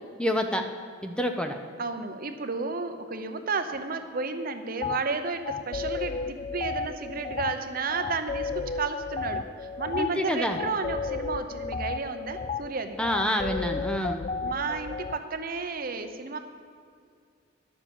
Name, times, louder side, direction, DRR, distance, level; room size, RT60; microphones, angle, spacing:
voice 1, 0.2-0.6 1.0-1.6 10.0-10.6 13.0-14.2, equal, 5° left, 5 dB, 0.7 m, -27 dB
voice 2, 1.8-13.0 14.4-16.4, right 4 dB, 50° right, 8 dB, 0.8 m, -32 dB
sound 1, 4.8-5.0 5.5-15.2, left 4 dB, 35° left, 0.3 m, -33 dB
11.0 x 7.3 x 7.1 m, 2.2 s
head